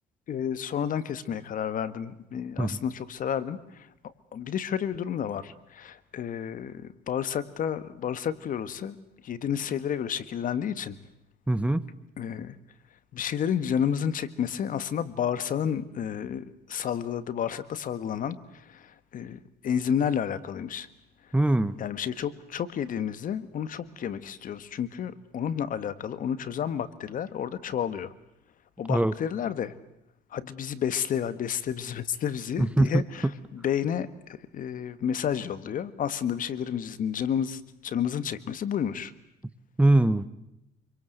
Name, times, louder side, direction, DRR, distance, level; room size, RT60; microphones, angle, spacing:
voice 1, 0.3-9.0 9.2-11.0 12.2-12.5 13.1-20.9 21.2-21.3 21.8-28.1 28.8-29.7 30.3-39.1, left 8 dB, 50° left, 14 dB, 1.7 m, -31 dB
voice 2, 11.5-11.8 21.3-21.7 28.9-29.1 32.6-33.0 39.8-40.3, right 1 dB, 5° right, 15 dB, 1.1 m, -22 dB
26.5 x 24.5 x 8.0 m, 0.82 s
cardioid pair, 110°, 17 cm